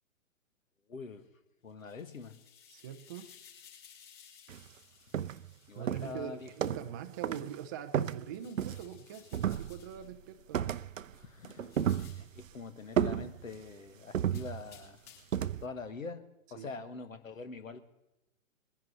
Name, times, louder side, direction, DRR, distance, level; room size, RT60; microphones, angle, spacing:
voice 1, 0.9-1.2 1.6-2.3 5.7-6.5 11.1-11.7 12.2-15.0 15.6-17.8, left 4 dB, 75° left, 10 dB, 1.5 m, -44 dB
sound 1, 1.7-5.8 8.2-10.0 11.5-12.3 14.3-15.4, left 8 dB, 25° left, 4.6 m, -58 dB
voice 2, 2.7-3.3 5.8-10.7 16.6-16.7, right 9 dB, 15° right, 6 dB, 0.4 m, -43 dB
sound 2, 4.5-4.7 5.1-5.5 5.9-7.0 7.2-7.5 7.9-9.0 9.3-10.0 10.5-11.1 11.4-12.5 13.0-13.7 14.1-14.9 15.3-15.7, right 9 dB, 70° right, 0.6 m, -33 dB
20.5 x 10.5 x 4.1 m, 0.94 s
figure-of-eight pair, 120°, 40 cm